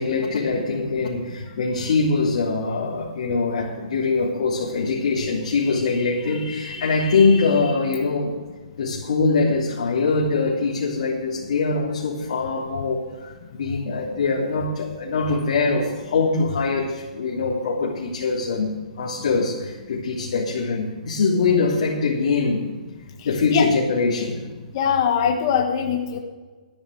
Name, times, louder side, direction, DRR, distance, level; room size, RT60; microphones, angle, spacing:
voice 1, 0.0-8.3 8.8-22.6 23.2-24.4, left 4 dB, 60° left, -5 dB, 3.2 m, -23 dB
voice 2, 24.7-26.2, left 7 dB, 35° left, 2 dB, 1.5 m, -21 dB
13.0 x 11.0 x 6.7 m, 1.3 s
hypercardioid pair, 165°, 4 cm